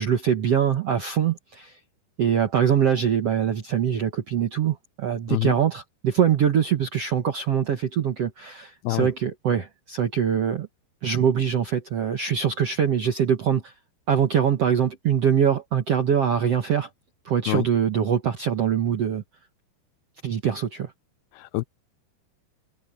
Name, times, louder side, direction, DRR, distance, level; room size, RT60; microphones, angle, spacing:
voice 1, 0.0-1.8 2.2-10.7 11.0-13.7 14.1-16.9 17.2-19.2 20.2-20.9, right 8 dB, 70° right, 1.5 m, -23 dB
voice 2, 5.3-5.5 8.8-9.1 17.5-17.7 21.4-21.6, left 20 dB, 80° left, 2.4 m, -25 dB
omnidirectional pair, 4.8 m